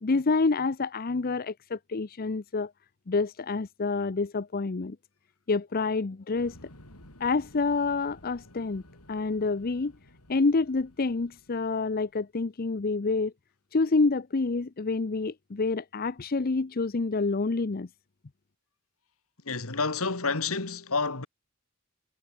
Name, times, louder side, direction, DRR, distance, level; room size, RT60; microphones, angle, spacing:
voice 1, 0.0-2.7 3.1-5.0 5.5-6.6 7.2-8.8 9.1-9.9 10.3-13.3 13.7-17.9, left 3 dB, 40° left, 0.6 m, -27 dB
sound 1, 6.4-12.2, left 1 dB, 90° left, 7.1 m, -54 dB
voice 2, 19.5-21.3, left 4 dB, 70° left, 2.4 m, -29 dB
head